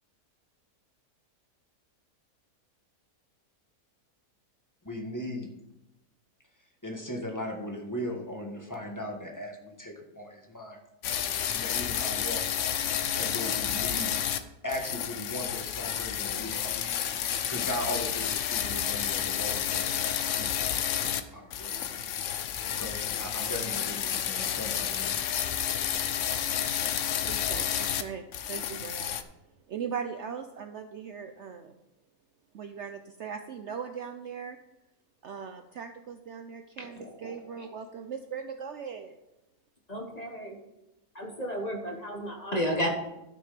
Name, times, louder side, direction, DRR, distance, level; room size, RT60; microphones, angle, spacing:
voice 1, 4.8-5.5 6.8-10.8 11.5-12.7 13.2-14.1 14.6-16.7 17.5-22.1 22.7-25.2, left 1 dB, 10° left, 0 dB, 1.6 m, -38 dB
sound 1, 11.0-14.4 14.7-21.2 21.5-28.0 28.3-29.2, left 9 dB, 60° left, 0.9 m, -30 dB
voice 2, 27.2-29.2 29.5-31.8 32.5-34.6 35.2-39.2, right 7 dB, 60° right, 7 dB, 0.8 m, -39 dB
voice 3, 36.8-37.1 37.6-37.7 39.9-40.6 41.1-42.9, equal, 30° left, 1 dB, 1.3 m, -32 dB
12.5 x 6.2 x 5.1 m, 0.92 s
omnidirectional pair, 1.6 m